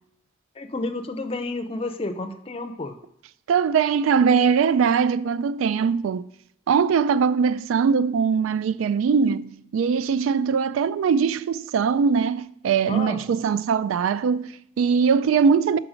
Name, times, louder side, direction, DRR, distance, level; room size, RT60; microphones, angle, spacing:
voice 1, 0.6-3.0 12.9-13.3, left 2 dB, 30° left, 0.5 m, -31 dB
voice 2, 3.5-6.2 6.7-15.8, right 6 dB, 85° right, 0.3 m, -21 dB
6.1 x 4.7 x 5.0 m
head